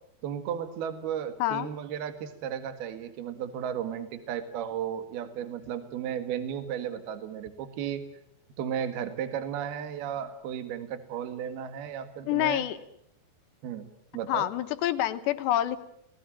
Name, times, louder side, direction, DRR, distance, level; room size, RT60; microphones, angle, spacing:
voice 1, 0.2-8.1 8.6-12.6 13.6-13.9 14.1-14.5, right 9 dB, 65° right, 10 dB, 3.5 m, -34 dB
voice 2, 12.3-12.8 14.3-15.8, left 13 dB, 75° left, 10 dB, 3.3 m, -27 dB
29.0 x 19.0 x 8.9 m, 0.73 s
omnidirectional pair, 5.1 m